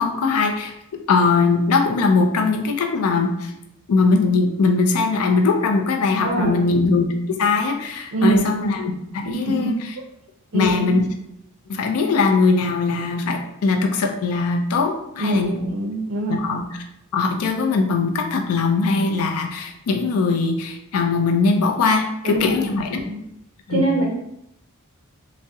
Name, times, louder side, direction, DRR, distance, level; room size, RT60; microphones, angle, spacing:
voice 1, 0.0-3.5 3.9-9.8 10.5-11.1 11.7-15.7 16.3-16.8 17.1-23.0 23.7-23.9, left 4 dB, 70° left, 4 dB, 0.4 m, -20 dB
voice 2, 6.2-6.7 8.1-8.5 9.4-9.7 10.5-10.9 15.2-16.4 19.0-19.1 22.2-22.7 23.0-23.2 23.7-24.1, right 2 dB, 60° right, 0 dB, 0.4 m, -23 dB
3.4 x 2.0 x 2.7 m, 0.81 s
head